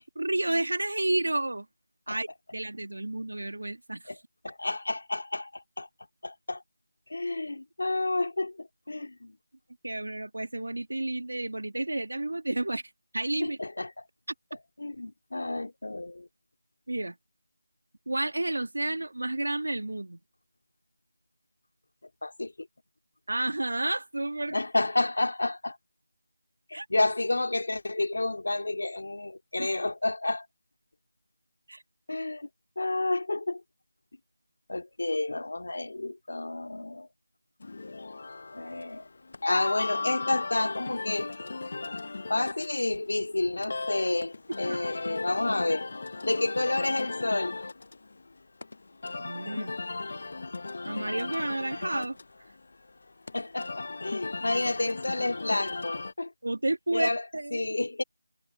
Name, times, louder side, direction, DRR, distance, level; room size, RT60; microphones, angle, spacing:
voice 1, 0.2-1.7 2.1-4.1 9.8-12.8 13.1-13.6 16.9-17.2 18.1-20.2 23.3-24.6 26.7-26.9 29.6-29.7 31.7-31.8 44.7-45.0 49.2-49.8 50.8-52.2 56.4-57.7, right 2 dB, 75° right, 2.3 m, -31 dB
voice 2, 4.4-5.9 6.2-6.6 7.1-9.4 13.4-13.9 14.8-16.3 22.2-22.5 24.5-25.8 26.7-30.5 32.1-32.5 32.8-33.6 34.7-37.1 38.5-39.1 39.4-41.3 42.3-45.9 46.2-47.6 53.3-56.3 56.9-57.2 57.5-58.0, left 2 dB, 60° left, 3.6 m, -30 dB
sound 1, 37.6-56.1, left 3 dB, 45° left, 0.9 m, -37 dB
figure-of-eight pair, 175°, 0 cm